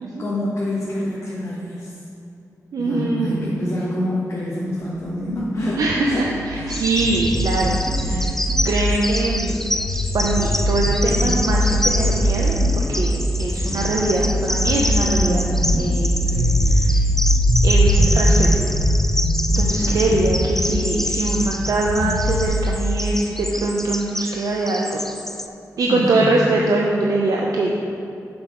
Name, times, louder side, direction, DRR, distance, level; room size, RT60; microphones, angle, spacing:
voice 1, 0.2-2.0 2.8-6.8 13.5-14.0 15.4-15.8 16.2-16.8 19.8-20.3 25.9-26.5, left 1 dB, 45° left, -8 dB, 1.7 m, -27 dB
voice 2, 2.7-3.6 5.8-8.3 8.6-9.7 10.1-15.5 15.8-16.3 17.6-18.5 19.6-25.1 25.8-27.8, right 2 dB, 75° right, -2 dB, 0.7 m, -22 dB
sound 1, 5.3-22.5, equal, 65° left, 1.5 m, -21 dB
Bird vocalization bird call bird song, 6.7-25.5, left 1 dB, 5° left, 0.4 m, -28 dB
6.9 x 6.0 x 5.1 m, 2.7 s
cardioid pair, 85°, 6 cm